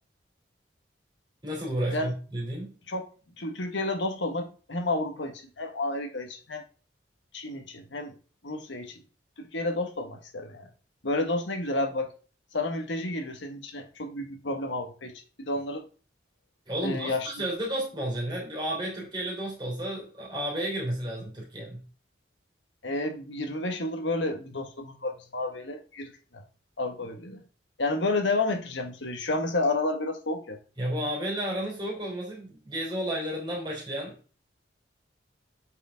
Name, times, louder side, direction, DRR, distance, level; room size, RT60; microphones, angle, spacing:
voice 1, 1.4-2.7 16.7-21.8 30.8-34.2, right 1 dB, 25° right, 3.3 m, -32 dB
voice 2, 3.4-6.6 7.3-8.1 8.4-9.0 9.4-10.7 11.0-12.1 12.5-15.8 16.8-17.3 22.8-26.4 26.8-27.4 27.8-30.6, left 2 dB, 75° left, 1.6 m, -31 dB
8.2 x 5.3 x 3.6 m
head